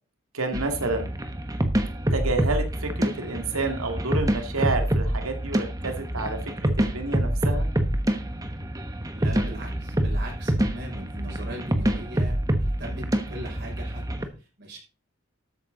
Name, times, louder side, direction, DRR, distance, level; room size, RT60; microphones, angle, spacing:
voice 1, 0.3-1.1 2.1-7.7, right 3 dB, 85° right, 5 dB, 2.3 m, -29 dB
sound 1, 0.5-14.3, right 1 dB, 15° right, 1.1 m, -26 dB
voice 2, 9.1-14.8, right 1 dB, 50° right, -1 dB, 6.2 m, -40 dB
13.0 x 9.1 x 4.0 m, 0.32 s
head